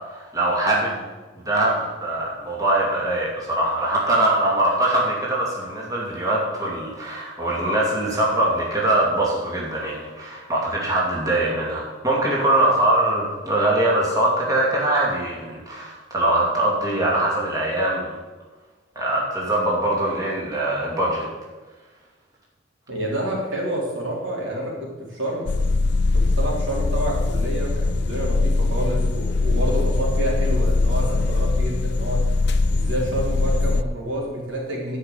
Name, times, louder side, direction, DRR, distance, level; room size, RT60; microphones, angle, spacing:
voice 1, 0.1-1.0 1.4-18.1 18.9-21.3, right 1 dB, 20° right, -5 dB, 2.6 m, -22 dB
voice 2, 22.9-25.5 26.1-32.2 32.7-35.0, right 1 dB, 75° right, -4 dB, 3.7 m, -28 dB
sound 1, 25.5-33.8, left 3 dB, 60° left, 0.5 m, -21 dB
11.5 x 5.8 x 8.1 m, 1.2 s
head